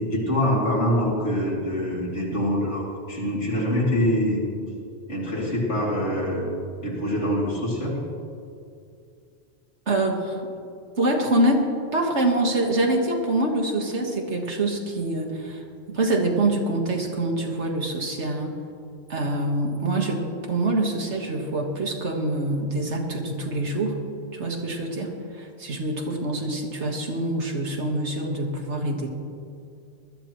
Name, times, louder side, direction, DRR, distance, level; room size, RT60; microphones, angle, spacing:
voice 1, 0.0-4.4 5.1-6.5 6.8-8.0, equal, 85° left, -4 dB, 3.2 m, -24 dB
voice 2, 9.9-10.4 11.0-18.6 19.1-24.0 24.3-29.1, right 1 dB, 80° right, 1 dB, 1.9 m, -25 dB
20.0 x 13.0 x 3.1 m, 2.5 s
omnidirectional pair, 1.2 m